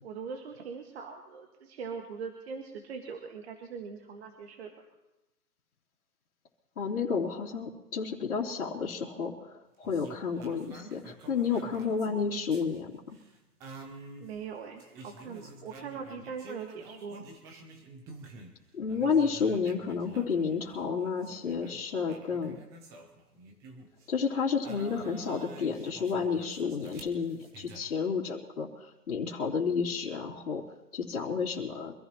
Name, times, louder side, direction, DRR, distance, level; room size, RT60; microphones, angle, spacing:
voice 1, 0.0-4.8 14.2-17.2, right 6 dB, 40° right, 3 dB, 1.8 m, -41 dB
voice 2, 6.8-12.9 18.7-22.6 24.1-30.6 30.9-31.9, left 5 dB, 55° left, -5 dB, 3.1 m, -31 dB
sound 1, 9.8-18.6 18.9-24.2 24.6-27.8, right 2 dB, 5° right, 0.6 m, -49 dB
25.5 x 15.5 x 3.0 m, 1.0 s
hypercardioid pair, 145°, 46 cm